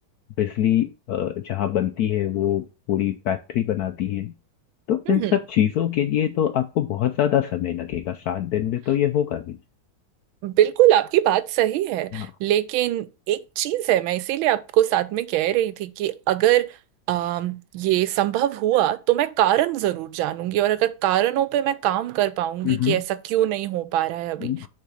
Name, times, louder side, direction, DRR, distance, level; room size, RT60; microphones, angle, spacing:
voice 1, 0.4-4.3 4.9-9.6 12.1-12.3 22.6-23.0 24.4-24.7, left 11 dB, 75° left, 0.9 m, -24 dB
voice 2, 5.1-5.4 10.4-16.8 17.1-24.5, right 13 dB, 85° right, 1.4 m, -22 dB
6.6 x 3.7 x 6.2 m
omnidirectional pair, 2.2 m